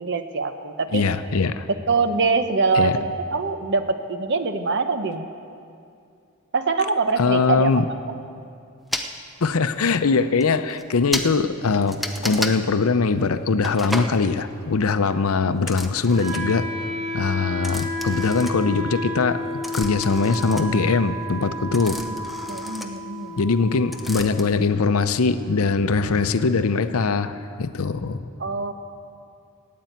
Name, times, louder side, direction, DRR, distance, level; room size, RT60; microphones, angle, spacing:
voice 1, 0.0-1.0 1.9-5.3 6.5-7.7 21.9-22.2 22.5-23.4 28.4-28.7, right 4 dB, 55° right, 8 dB, 0.8 m, -24 dB
voice 2, 0.9-1.7 2.7-3.0 7.2-7.8 9.4-16.7 17.1-22.0 23.4-28.3, left 4 dB, 80° left, 11 dB, 0.6 m, -22 dB
sound 1, 8.9-9.1 10.0-10.1 10.4-10.5 10.7-10.8 11.1-11.3 11.9-12.6 13.6-14.1 15.6-16.6 17.6-19.0 19.3-23.6 23.9-24.4, equal, ahead, 0.6 m, -32 dB
Wind instrument woodwind instrument, 16.1-26.1, left 1 dB, 40° right, 2.4 m, -32 dB
13.5 x 8.5 x 9.2 m, 2.5 s
head